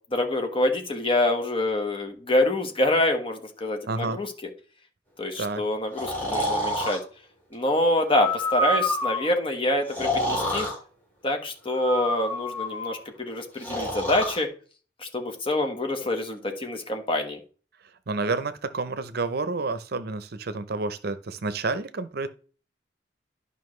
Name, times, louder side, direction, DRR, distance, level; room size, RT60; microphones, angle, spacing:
voice 1, 0.1-4.3 5.2-7.0 7.5-10.7 11.2-14.5 15.0-17.4, left 1 dB, 30° left, 4 dB, 1.4 m, -26 dB
voice 2, 3.9-4.2 5.4-5.6 18.1-22.3, right 3 dB, 60° right, 13 dB, 0.7 m, -29 dB
Breathing, 6.0-7.0 8.1-9.3 9.9-10.7 11.7-13.0 13.6-14.4, left 1 dB, 10° left, 3.9 m, -28 dB
11.0 x 5.5 x 3.2 m, 0.39 s
head